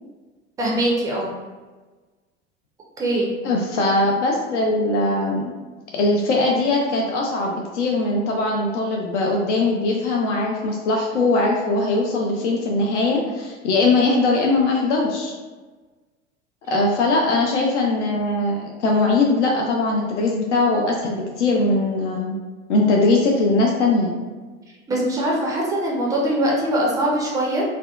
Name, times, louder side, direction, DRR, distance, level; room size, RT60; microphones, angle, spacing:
voice 1, 0.6-1.3 3.0-3.3 24.9-27.6, right 1 dB, 10° right, -3 dB, 0.3 m, -22 dB
voice 2, 3.4-5.5 5.9-15.3 16.7-22.3 22.7-24.1, left 2 dB, 70° left, -1 dB, 0.5 m, -20 dB
2.5 x 2.1 x 2.3 m, 1.3 s
figure-of-eight pair, 75°, 37 cm